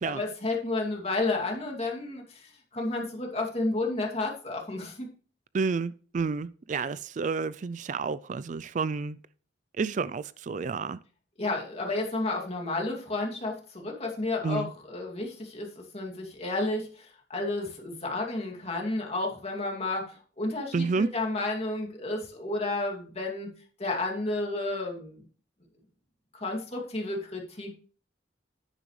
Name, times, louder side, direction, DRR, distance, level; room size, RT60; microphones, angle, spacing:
voice 1, 0.0-5.1 11.4-23.5 23.8-25.2 26.3-27.7, left 2 dB, 35° left, 2.5 m, -31 dB
voice 2, 5.5-9.2 9.8-11.0 14.4-14.7 20.7-21.1, right 4 dB, 45° right, 0.4 m, -30 dB
10.5 x 10.0 x 3.2 m
head